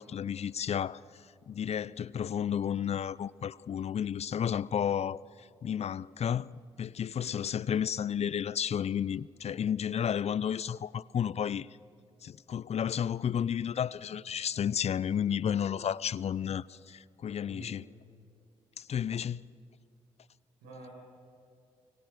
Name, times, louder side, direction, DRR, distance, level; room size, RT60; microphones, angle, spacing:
voice 1, 0.0-11.7 12.2-17.8 18.8-19.5, left 8 dB, 50° left, 0.5 m, -32 dB
voice 2, 17.3-17.8 20.6-20.9, right 2 dB, 90° right, 5.4 m, -49 dB
23.5 x 23.0 x 6.5 m
hypercardioid pair, 45°, 13 cm